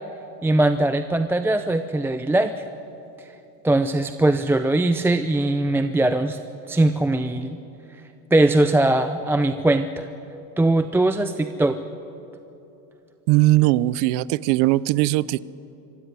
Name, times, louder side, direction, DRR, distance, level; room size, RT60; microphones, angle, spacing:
voice 1, 0.4-2.7 3.6-6.4 6.7-7.6 8.3-10.1 10.6-11.8, right 2 dB, 5° right, 8 dB, 0.5 m, -20 dB
voice 2, 13.3-15.4, right 17 dB, 65° right, 20 dB, 0.7 m, -19 dB
25.0 x 16.0 x 9.6 m, 2.9 s
supercardioid pair, 125°, 42 cm